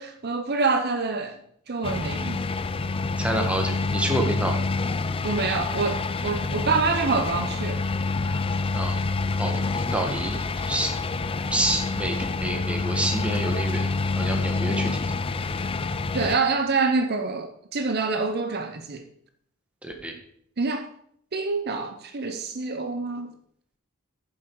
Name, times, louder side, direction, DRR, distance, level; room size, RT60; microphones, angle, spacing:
voice 1, 0.0-1.4 1.7-2.5 5.2-7.9 16.1-19.0 20.6-20.9 21.3-23.3, right 4 dB, 50° right, 7 dB, 0.8 m, -26 dB
sound 1, 1.8-16.4, left 3 dB, 25° left, 0.5 m, -27 dB
voice 2, 3.2-4.7 8.7-9.1 9.4-10.9 11.5-13.9 14.2-15.1 19.8-20.1, right 1 dB, 5° right, 2 dB, 1.5 m, -28 dB
9.4 x 7.4 x 4.7 m, 0.67 s
head